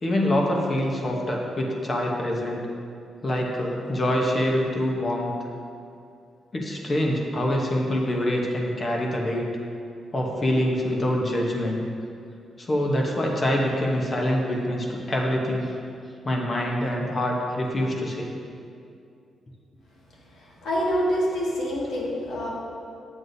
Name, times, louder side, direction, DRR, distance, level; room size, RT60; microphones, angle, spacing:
voice 1, 0.0-2.6 3.2-5.3 6.5-9.5 10.1-11.8 12.6-15.7 16.2-18.3, left 1 dB, 25° left, -1 dB, 0.9 m, -25 dB
voice 2, 20.6-22.5, equal, 85° left, -5 dB, 1.8 m, -26 dB
9.5 x 7.8 x 2.7 m, 2.5 s
wide cardioid pair, 160°, 0 cm